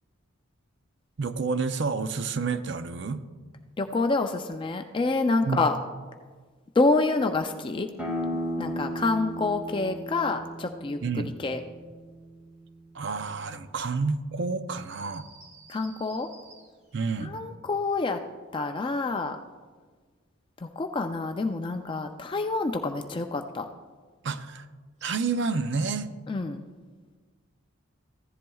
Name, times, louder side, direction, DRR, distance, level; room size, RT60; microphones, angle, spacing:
voice 1, 1.2-3.2 5.4-5.6 11.0-11.3 12.9-15.3 16.9-17.3 24.2-24.7 25.0-26.1, right 4 dB, 55° right, 11 dB, 0.5 m, -29 dB
voice 2, 3.8-5.7 6.7-7.9 8.6-11.6 15.7-16.3 17.2-18.2 18.5-19.4 20.6-23.7 26.3-26.7, left 3 dB, 25° left, 6 dB, 0.3 m, -27 dB
sound 1, 8.0-13.4, equal, 5° right, 1.4 m, -36 dB
sound 2, 14.8-17.0 25.0-25.7, right 3 dB, 35° right, 1.0 m, -52 dB
15.0 x 10.5 x 2.3 m, 1.5 s
head